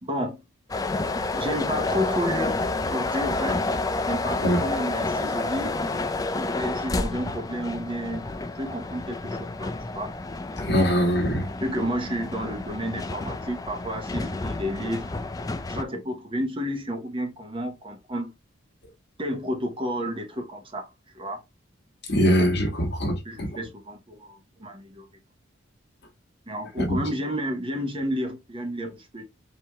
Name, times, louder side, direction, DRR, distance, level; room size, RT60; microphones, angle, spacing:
voice 1, 0.0-0.4 1.3-2.6 2.9-3.7 4.1-5.8 6.2-10.1 11.6-15.1 15.7-18.3 19.2-20.9 21.1-21.4 23.2-25.0 26.5-29.2, equal, 25° right, 0.9 m, -31 dB
sound 1, 0.7-15.8, left 2 dB, 20° left, 0.3 m, -30 dB
voice 2, 10.6-11.5 22.1-23.5 26.8-27.0, equal, 55° left, 1.4 m, -22 dB
4.7 x 2.8 x 3.4 m
head